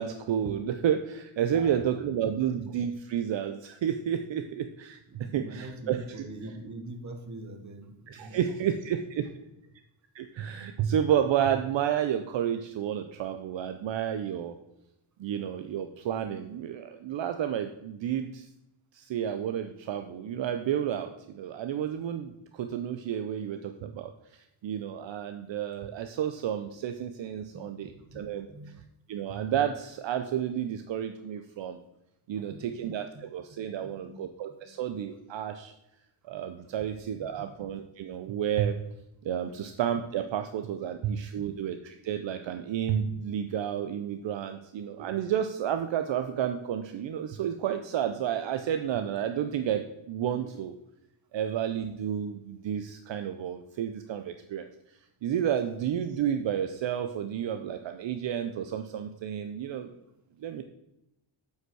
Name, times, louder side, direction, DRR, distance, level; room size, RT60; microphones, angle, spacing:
voice 1, 0.0-6.3 8.1-9.3 10.1-14.5 15.2-18.5 18.9-28.5 29.1-31.8 32.3-35.7 36.2-38.8 39.2-50.7 51.3-54.7 55.2-59.9 60.4-60.6, right 9 dB, 65° right, 7 dB, 0.7 m, -31 dB
voice 2, 1.5-2.3 5.1-8.7 27.5-28.2 28.5-28.8 32.4-32.8 33.1-33.2 33.8-34.2 37.2-37.3 41.4-41.5, right 2 dB, 35° right, 6 dB, 1.3 m, -44 dB
7.9 x 5.7 x 6.1 m, 0.88 s
wide cardioid pair, 150°, 49 cm